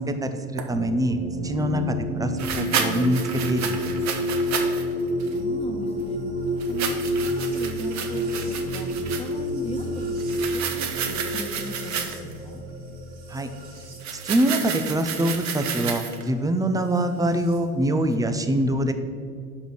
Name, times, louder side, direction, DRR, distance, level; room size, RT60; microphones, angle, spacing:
voice 1, 0.0-3.2 3.5-3.9 13.3-13.5 14.1-18.9, right 1 dB, 10° right, 8 dB, 0.4 m, -24 dB
sound 1, 0.6-0.7 2.4-4.9 5.2-5.4 6.6-9.3 10.2-12.3 14.0-16.3, right 7 dB, 40° right, 0.9 m, -31 dB
sound 2, 0.7-15.8 16.9-17.6, equal, 60° right, 1.8 m, -30 dB
voice 2, 5.3-6.2 6.7-8.9 9.2-12.6, left 2 dB, 15° left, 1 dB, 1.2 m, -38 dB
5.3 x 5.0 x 6.3 m, 2.2 s
hypercardioid pair, 75°, 44 cm